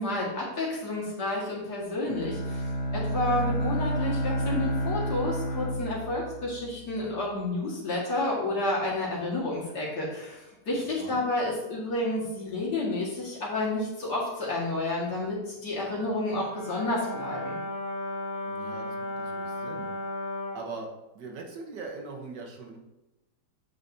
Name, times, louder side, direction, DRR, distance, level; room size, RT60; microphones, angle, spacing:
voice 1, 0.0-2.6 2.9-10.4 10.7-17.6, left 2 dB, 70° left, -4 dB, 2.4 m, -30 dB
Bowed string instrument, 2.1-7.1, right 1 dB, 40° left, 1.5 m, -30 dB
Brass instrument, 16.3-20.7, left 1 dB, 55° left, 2.2 m, -35 dB
voice 2, 18.4-19.9 20.5-20.9 21.1-22.8, right 4 dB, 85° right, 2 dB, 1.7 m, -41 dB
7.8 x 5.3 x 2.7 m, 0.98 s
omnidirectional pair, 1.8 m